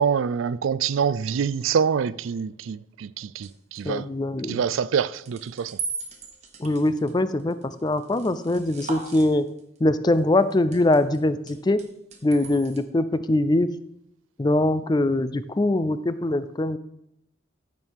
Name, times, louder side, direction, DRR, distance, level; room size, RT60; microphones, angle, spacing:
voice 1, 0.0-4.1 4.5-5.8, right 7 dB, 80° right, 0.4 m, -25 dB
sound 1, 3.4-3.8 5.1-9.8 10.1-11.2 11.5-12.8, right 4 dB, 35° right, 1.2 m, -38 dB
voice 2, 3.9-4.6 6.6-7.6 7.8-9.5 9.8-11.8 12.2-13.7 14.4-16.8, left 1 dB, 20° left, 0.4 m, -22 dB
14.0 x 5.4 x 4.7 m
head